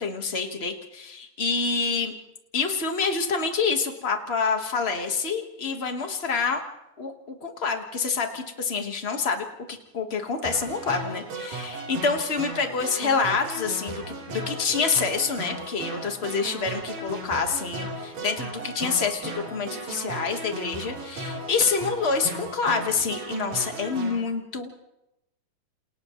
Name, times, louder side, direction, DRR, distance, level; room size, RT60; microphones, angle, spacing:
voice 1, 0.0-2.1 2.5-6.6 7.0-24.7, left 5 dB, 65° left, 4 dB, 0.6 m, -27 dB
sound 1, 10.4-24.2, right 2 dB, 90° right, 5.6 m, -36 dB
29.0 x 28.5 x 3.2 m, 0.89 s
omnidirectional pair, 3.9 m